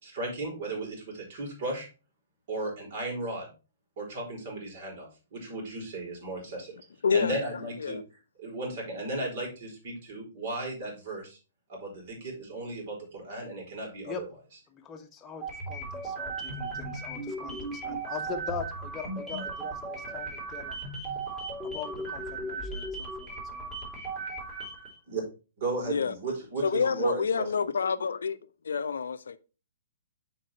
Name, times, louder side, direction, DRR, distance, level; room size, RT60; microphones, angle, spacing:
voice 1, 0.0-1.9 2.5-3.5 4.0-6.8 7.1-8.0 8.4-11.4 11.7-14.3 25.1-25.2 25.6-27.5, right 2 dB, 50° right, 4.3 m, -35 dB
voice 2, 7.0-7.4 7.8-8.0 25.9-26.1 26.6-28.4 28.6-29.4, left 6 dB, 65° left, 0.6 m, -27 dB
voice 3, 14.7-20.8 21.6-23.7, left 6 dB, 15° left, 1.0 m, -41 dB
sound 1, 15.4-25.0, right 3 dB, 15° right, 3.4 m, -36 dB
7.5 x 4.7 x 4.5 m
figure-of-eight pair, 120°, 0 cm